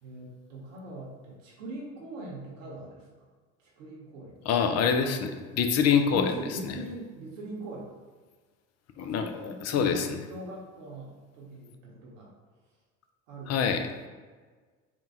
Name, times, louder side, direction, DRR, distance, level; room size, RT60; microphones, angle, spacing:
voice 1, 0.0-3.1 3.6-4.4 6.1-8.0 9.0-12.3 13.3-14.1, right 1 dB, 75° right, -4 dB, 1.1 m, -42 dB
voice 2, 4.5-6.3 6.6-6.8 9.0-10.2 13.5-13.8, left 6 dB, 40° left, 6 dB, 0.6 m, -25 dB
3.7 x 2.4 x 4.2 m, 1.4 s
hypercardioid pair, 75°, 38 cm